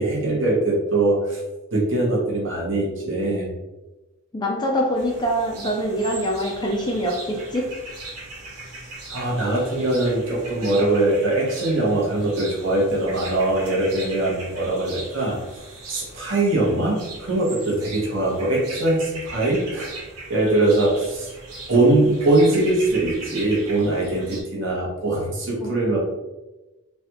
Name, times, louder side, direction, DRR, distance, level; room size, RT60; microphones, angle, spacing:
voice 1, 0.0-1.4 1.7-3.5 9.1-15.4 15.9-19.9 20.3-21.3 21.7-26.0, right 2 dB, 55° right, -4 dB, 1.0 m, -22 dB
voice 2, 4.3-7.6 25.6-25.7, equal, 20° left, 0 dB, 0.3 m, -24 dB
sound 1, 5.0-24.4, right 2 dB, 85° right, 0.8 m, -39 dB
3.2 x 2.3 x 2.9 m, 1.1 s
head